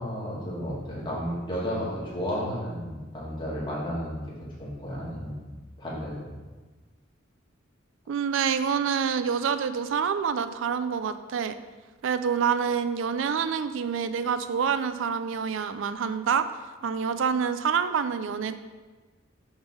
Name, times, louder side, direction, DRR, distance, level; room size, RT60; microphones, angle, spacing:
voice 1, 0.0-4.2 4.6-6.2, equal, 25° left, -7 dB, 1.9 m, -33 dB
voice 2, 8.1-11.5 12.0-16.5 16.8-18.5, right 6 dB, 70° right, 11 dB, 0.4 m, -27 dB
5.8 x 3.7 x 5.5 m, 1.3 s
head